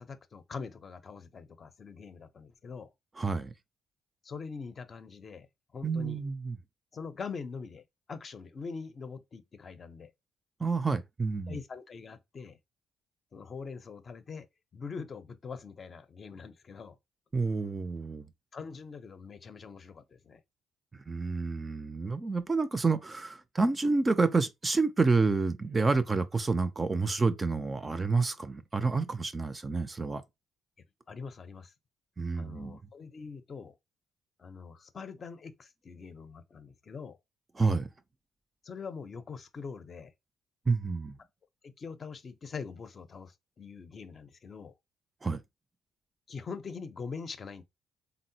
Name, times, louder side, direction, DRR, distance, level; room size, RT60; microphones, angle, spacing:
voice 1, 0.0-2.9 4.2-5.5 5.7-6.2 6.9-10.1 11.5-12.6 13.3-14.5 14.7-17.0 18.5-20.4 31.1-31.7 32.3-33.7 34.4-37.2 38.6-40.1 41.6-44.7 46.3-47.6, left 5 dB, 45° left, 0.5 m, -43 dB
voice 2, 3.2-3.5 5.8-6.6 10.6-11.6 17.3-18.3 21.1-30.2 32.2-32.8 37.6-37.9 40.7-41.2 45.2-45.4, right 4 dB, 25° right, 0.4 m, -29 dB
3.6 x 2.0 x 2.7 m
cardioid pair, 90°, 0 cm